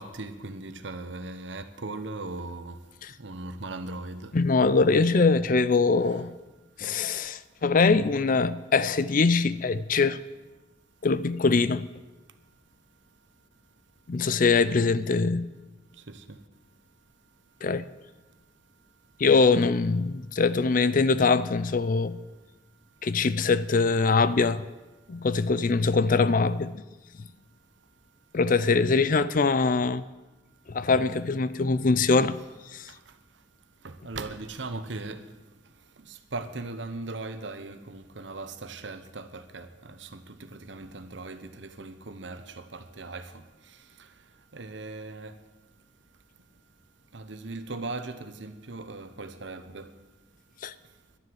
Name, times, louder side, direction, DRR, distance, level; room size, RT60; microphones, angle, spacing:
voice 1, 0.0-2.8 3.2-4.3 6.0-6.2 14.6-14.8 16.1-16.4 33.8-35.2 36.1-40.2 40.5-43.4 44.5-45.3 47.1-49.9, right 2 dB, 65° right, 1.0 m, -38 dB
voice 2, 4.3-6.3 6.8-10.2 11.0-11.9 14.1-15.5 17.6-17.8 19.2-22.2 23.0-24.6 25.1-26.8 28.3-30.0 30.7-32.4 32.7-32.9 50.6-50.7, left 4 dB, 45° left, 0.5 m, -23 dB
12.0 x 11.0 x 7.9 m
head